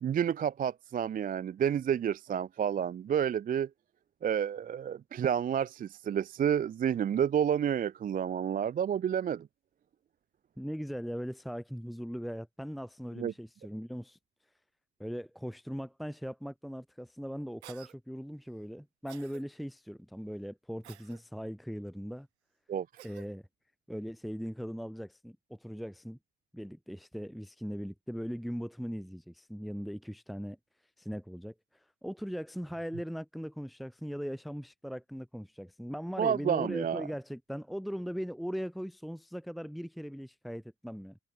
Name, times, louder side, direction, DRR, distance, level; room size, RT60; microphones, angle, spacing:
voice 1, 0.0-3.7 4.2-9.5 13.2-13.3 22.7-22.9 36.2-37.1, right 8 dB, 30° right, 0.3 m, -30 dB
voice 2, 10.6-14.2 15.0-22.3 23.0-23.4 23.9-26.2 26.5-30.6 31.0-41.2, equal, ahead, 1.8 m, -39 dB
Cough, 17.6-17.9 19.1-19.4 20.8-21.2 23.0-23.3, right 14 dB, 85° right, 1.7 m, -51 dB
hypercardioid pair, 40°, 32 cm